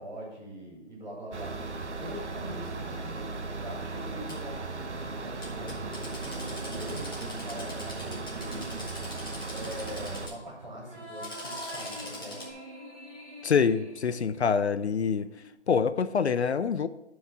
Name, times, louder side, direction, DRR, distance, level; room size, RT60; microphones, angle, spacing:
voice 1, 0.0-9.1 9.5-12.4, right 1 dB, 40° right, -3 dB, 2.7 m, -42 dB
sound 1, 1.3-10.3, right 3 dB, 75° right, 1.1 m, -37 dB
Drill, 4.3-4.4 5.4-10.3 11.0-12.5, left 1 dB, 20° left, 1.2 m, -43 dB
sound 2, 10.8-15.5, left 1 dB, 10° right, 3.5 m, -45 dB
voice 2, 13.4-15.3 15.7-16.9, left 6 dB, 70° left, 13 dB, 0.5 m, -25 dB
9.5 x 4.7 x 5.5 m, 0.95 s
hypercardioid pair, 175°, 35 cm